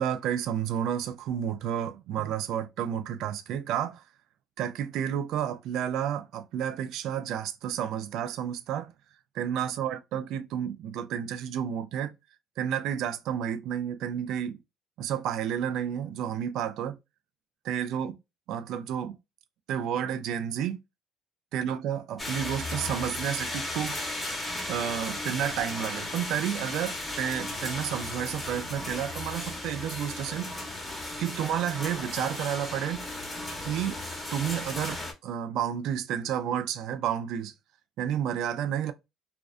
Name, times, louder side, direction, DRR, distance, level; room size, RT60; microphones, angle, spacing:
voice 1, 0.0-4.0 4.6-8.9 9.3-12.1 12.6-14.6 15.0-17.0 17.6-18.2 18.5-19.2 19.7-20.8 21.5-24.0 24.7-30.5 31.2-33.1 33.6-34.0 34.3-37.5 38.0-38.9, right 9 dB, 70° right, 0.3 m, -31 dB
sound 1, 22.2-35.1, left 1 dB, 10° left, 0.8 m, -35 dB
2.4 x 2.2 x 2.4 m
cardioid pair, 110°, 0 cm